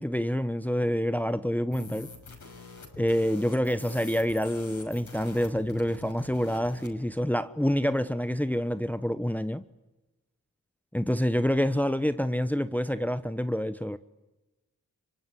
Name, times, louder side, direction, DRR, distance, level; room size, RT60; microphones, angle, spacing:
voice 1, 0.0-2.1 3.0-9.6 10.9-14.0, equal, 5° left, 1.1 m, -27 dB
sound 1, 1.7-6.9, left 3 dB, 55° left, 6.3 m, -45 dB
25.0 x 24.0 x 10.0 m
cardioid pair, 45°, 35 cm